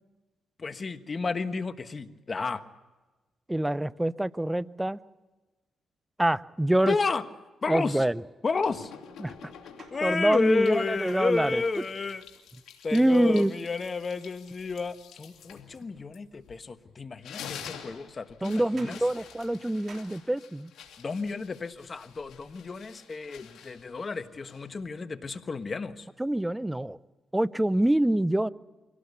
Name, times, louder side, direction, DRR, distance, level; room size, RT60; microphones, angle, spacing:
voice 1, 0.6-2.6 6.9-7.2 7.6-8.0 8.4-8.9 9.9-12.3 12.8-19.0 21.0-26.1, left 4 dB, 40° left, 10 dB, 1.3 m, -31 dB
voice 2, 3.5-5.0 6.2-7.0 7.7-8.2 9.2-9.5 10.0-11.6 12.9-13.6 18.4-20.7 26.2-27.0 27.3-28.5, right 1 dB, 10° right, 18 dB, 0.6 m, -25 dB
sound 1, 8.6-10.2 10.7-16.7 17.0-24.9, left 8 dB, 80° left, 2.7 m, -48 dB
sound 2, 9.8-13.5 16.3-16.4 17.3-17.4 18.5-20.2, right 5 dB, 60° right, 3.1 m, -54 dB
24.5 x 17.5 x 8.3 m, 1.2 s
cardioid pair, 65°, 0 cm